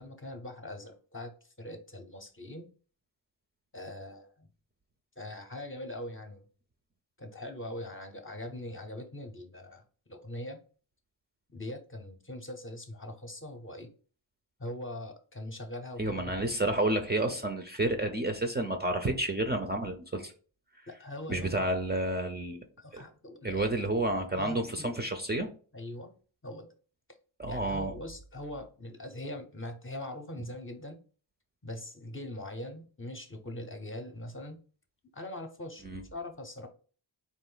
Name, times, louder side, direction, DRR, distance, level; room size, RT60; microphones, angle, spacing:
voice 1, 0.0-2.7 3.7-4.5 5.2-6.4 7.2-9.8 10.1-10.6 11.5-13.9 14.6-16.3 20.9-21.7 22.8-23.7 24.4-24.9 25.7-26.1 26.4-26.7 27.5-31.0 31.6-34.6 35.1-35.9 36.1-36.7, left 1 dB, 25° left, 4 dB, 0.8 m, -42 dB
voice 2, 16.0-20.3 21.3-22.7 22.9-23.0 23.4-25.5 27.4-27.9 35.8-36.0, right 1 dB, 20° right, 5 dB, 0.5 m, -30 dB
4.1 x 2.6 x 3.9 m, 0.39 s
cardioid pair, 75°, 47 cm